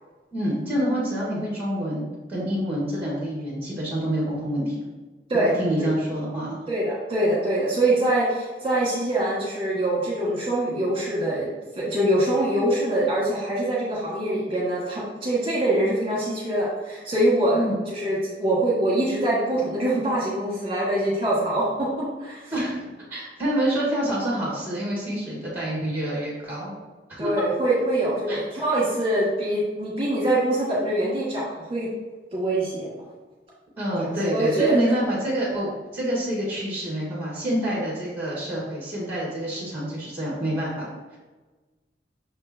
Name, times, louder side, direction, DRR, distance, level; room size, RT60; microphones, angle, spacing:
voice 1, 0.3-4.9 5.3-6.6 17.5-17.8 22.5-22.8 23.1-26.7 27.1-27.3 28.3-28.4 33.8-41.2, equal, 10° right, -5 dB, 1.7 m, -27 dB
voice 2, 6.7-11.5 11.8-21.9 22.2-22.5 27.2-31.9 32.3-32.9 34.0-34.9, right 1 dB, 30° right, -6 dB, 1.8 m, -24 dB
6.2 x 5.2 x 2.9 m, 1.3 s
head